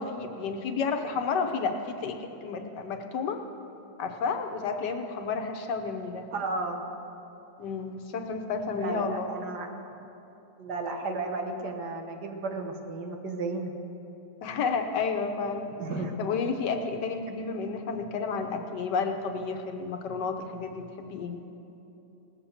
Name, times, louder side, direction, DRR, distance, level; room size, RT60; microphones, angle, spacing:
voice 1, 0.0-3.4 4.0-6.3 7.6-9.3 14.4-15.7 16.2-21.4, left 5 dB, 80° left, 6 dB, 1.6 m, -31 dB
voice 2, 6.3-6.8 8.7-9.7 10.6-13.7 15.8-16.2, right 3 dB, 70° right, 4 dB, 1.8 m, -33 dB
18.5 x 7.4 x 7.1 m, 3.0 s
omnidirectional pair, 1.8 m